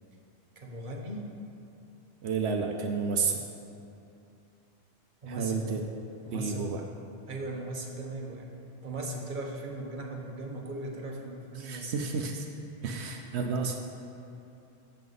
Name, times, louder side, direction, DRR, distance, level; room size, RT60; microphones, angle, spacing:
voice 1, 0.6-1.4 5.2-5.7 6.2-6.7 7.3-8.5 8.8-12.2, right 2 dB, 50° right, 0 dB, 1.3 m, -38 dB
voice 2, 2.2-3.4 5.3-6.0 6.3-6.8 11.5-12.5 12.8-13.8, right 5 dB, 85° right, 3 dB, 1.0 m, -31 dB
15.0 x 6.7 x 4.0 m, 2.7 s
omnidirectional pair, 1.1 m